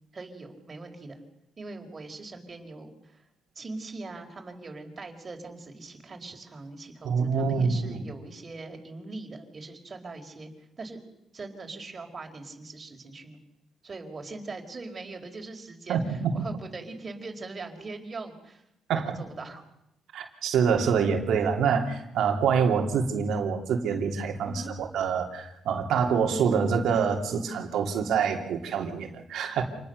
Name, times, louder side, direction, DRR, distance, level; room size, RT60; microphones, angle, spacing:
voice 1, 0.1-1.2 1.6-3.2 3.5-10.5 10.8-11.0 11.3-13.4 13.8-18.6 18.9-19.6 24.4-24.7, right 3 dB, 35° right, 4 dB, 4.3 m, -41 dB
voice 2, 7.0-8.0 15.9-16.4 18.9-19.2 20.1-29.6, right 6 dB, 75° right, 4 dB, 3.0 m, -26 dB
27.5 x 20.0 x 6.7 m, 0.81 s
cardioid pair, 90°, 0 cm